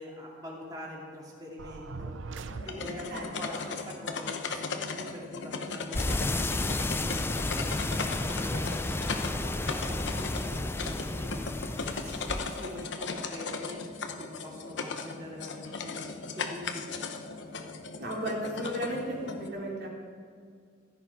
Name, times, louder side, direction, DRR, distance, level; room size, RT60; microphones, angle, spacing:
voice 1, 0.0-2.1 2.6-8.6 9.0-11.8 12.0-13.8 14.2-16.1 16.3-17.3, equal, 20° right, -4 dB, 2.5 m, -44 dB
sound 1, 1.6-3.3, right 3 dB, 80° right, 0.6 m, -41 dB
sound 2, 2.5-19.5, left 4 dB, 65° left, 0.9 m, -37 dB
sound 3, 5.9-12.8, left 2 dB, 10° left, 0.4 m, -32 dB
voice 2, 18.0-20.0, equal, 60° right, -3 dB, 2.8 m, -34 dB
15.5 x 13.0 x 4.7 m, 2.1 s
head